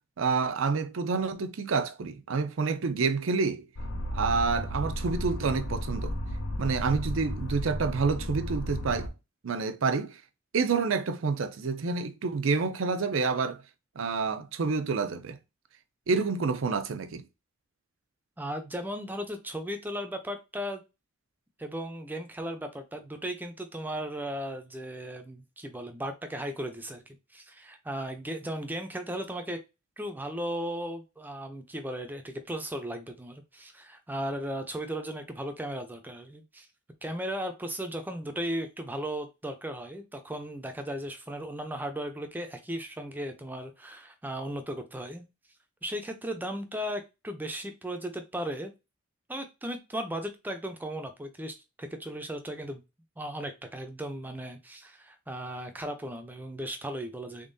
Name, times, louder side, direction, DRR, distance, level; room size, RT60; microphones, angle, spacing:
voice 1, 0.2-3.6 4.1-6.2 6.6-9.1 9.4-10.2 10.5-13.6 14.0-15.4 16.1-17.2, right 4 dB, 85° right, 0.5 m, -28 dB
sound 1, 3.8-9.1, left 1 dB, 70° left, 0.6 m, -34 dB
voice 2, 18.4-20.8 21.6-29.6 30.0-36.7 37.0-45.2 45.8-48.7 49.3-52.8 53.2-57.5, equal, 10° right, 0.4 m, -36 dB
3.7 x 3.5 x 2.6 m
head